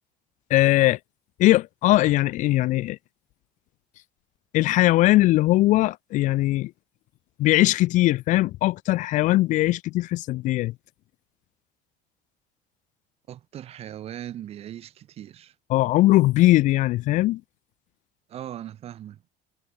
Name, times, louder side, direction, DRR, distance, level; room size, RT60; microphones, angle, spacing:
voice 1, 0.5-1.0 1.4-3.0 4.5-6.7 7.4-10.7 15.7-17.4, left 17 dB, 50° left, 0.7 m, -20 dB
voice 2, 13.3-15.5 18.3-19.2, right 11 dB, 40° right, 4.3 m, -39 dB
cardioid pair, 175°, 16 cm